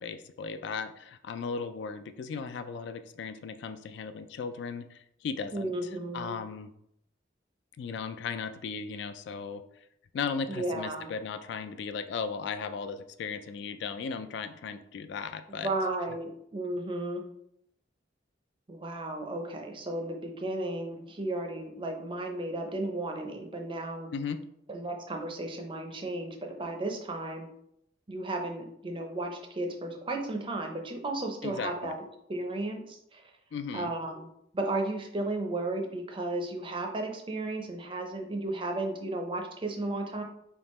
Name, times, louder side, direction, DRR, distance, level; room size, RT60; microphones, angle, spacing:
voice 1, 0.0-6.7 7.8-9.6 10.1-15.7 24.1-24.4 31.4-31.9 33.5-33.9, left 5 dB, 60° left, 10 dB, 0.3 m, -36 dB
voice 2, 5.5-6.4 10.5-11.1 15.6-17.2 18.7-24.1 24.7-27.5 28.1-32.0 32.3-33.2 33.7-34.3 34.5-40.2, right 2 dB, 25° right, 3 dB, 0.5 m, -34 dB
3.6 x 2.8 x 4.1 m, 0.76 s
head